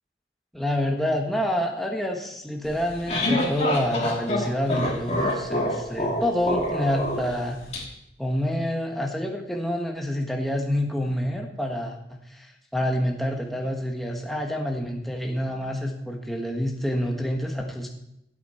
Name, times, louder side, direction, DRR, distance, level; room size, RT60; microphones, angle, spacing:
voice 1, 0.5-7.6 8.2-17.9, equal, ahead, 1 dB, 1.2 m, -27 dB
sound 1, 2.7-7.8, left 1 dB, 35° left, 3.1 m, -26 dB
16.5 x 8.4 x 4.3 m, 0.80 s
head